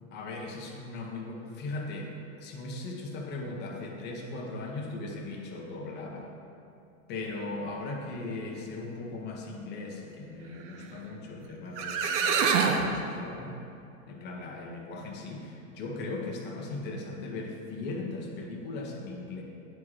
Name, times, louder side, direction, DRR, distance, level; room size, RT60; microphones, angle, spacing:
voice 1, 0.1-6.3 7.1-13.6 14.1-19.4, left 2 dB, 25° left, -1 dB, 0.7 m, -38 dB
sound 1, 11.4-11.5 11.8-12.9, right 6 dB, 60° right, 0.6 m, -25 dB
9.3 x 3.6 x 3.2 m, 2.7 s
supercardioid pair, 140°, 42 cm